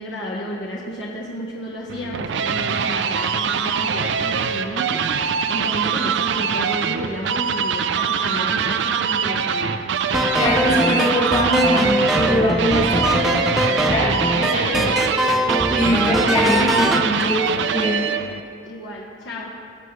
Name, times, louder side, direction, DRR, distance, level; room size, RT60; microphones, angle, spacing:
voice 1, 0.0-5.0 5.5-9.8 12.8-15.0 18.6-19.5, equal, 70° left, -4 dB, 1.1 m, -32 dB
sound 1, 1.9-18.4, right 6 dB, 70° right, 0.4 m, -23 dB
sound 2, 10.1-17.1, equal, ahead, 0.4 m, -22 dB
voice 2, 10.3-13.0 13.9-14.1 15.7-18.2, equal, 35° left, -3 dB, 1.8 m, -22 dB
17.0 x 6.0 x 3.1 m, 2.3 s
head